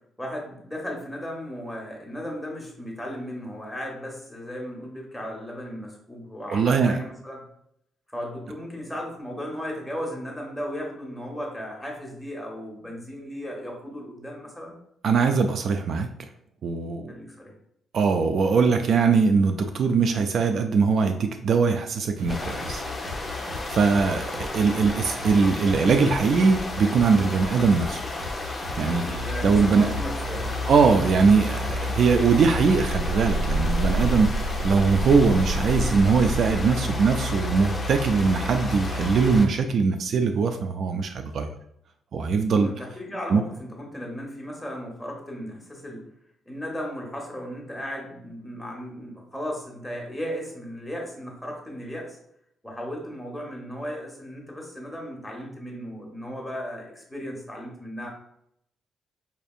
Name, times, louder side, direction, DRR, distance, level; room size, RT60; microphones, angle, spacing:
voice 1, 0.2-7.4 8.1-14.7 17.1-17.5 29.0-30.5 42.5-46.1 46.5-52.2 52.6-58.1, equal, 5° left, -1 dB, 1.2 m, -36 dB
voice 2, 6.5-7.0 15.0-16.1 16.6-17.1 17.9-22.8 23.4-28.0 28.8-29.9 30.7-41.5 42.1-42.7 43.3-43.4, right 5 dB, 60° right, 6 dB, 0.3 m, -21 dB
sound 1, 22.2-35.9, left 2 dB, 85° right, 1.5 m, -38 dB
sound 2, 22.3-39.5, left 2 dB, 20° left, 0.7 m, -34 dB
sound 3, 29.1-39.4, equal, 75° left, 0.5 m, -29 dB
5.3 x 2.6 x 2.4 m, 0.74 s
cardioid pair, 90°, 0 cm